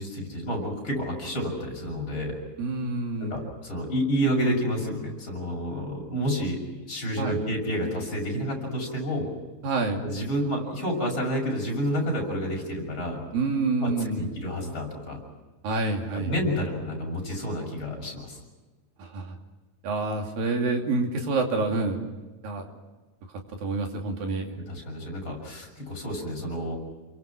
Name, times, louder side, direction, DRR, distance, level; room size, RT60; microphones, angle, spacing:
voice 1, 0.0-2.4 3.3-6.6 6.9-9.3 10.0-13.2 13.8-15.2 16.1-18.4 24.7-26.8, equal, 30° left, 0 dB, 7.5 m, -29 dB
voice 2, 2.6-3.3 7.2-7.4 9.6-10.0 13.3-14.3 15.6-16.3 19.0-19.4 19.8-22.0 22.4-22.7 23.6-24.5, right 3 dB, 65° right, 3 dB, 4.3 m, -27 dB
30.0 x 23.0 x 6.1 m, 1.3 s
omnidirectional pair, 4.6 m